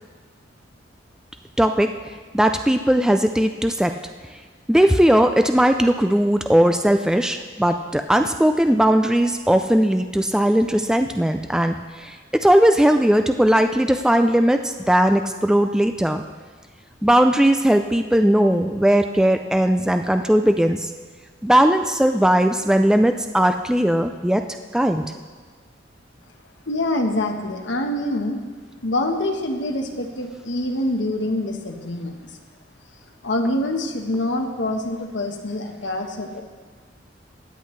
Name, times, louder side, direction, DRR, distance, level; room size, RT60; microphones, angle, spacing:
voice 1, 1.6-1.9 2.3-3.9 4.7-16.2 17.0-20.9 21.4-24.4 24.7-25.1, right 1 dB, 5° right, 6 dB, 0.3 m, -18 dB
voice 2, 26.7-28.4 28.8-32.2 33.2-36.4, left 1 dB, 75° left, 3 dB, 1.2 m, -25 dB
16.0 x 10.0 x 3.2 m, 1.5 s
head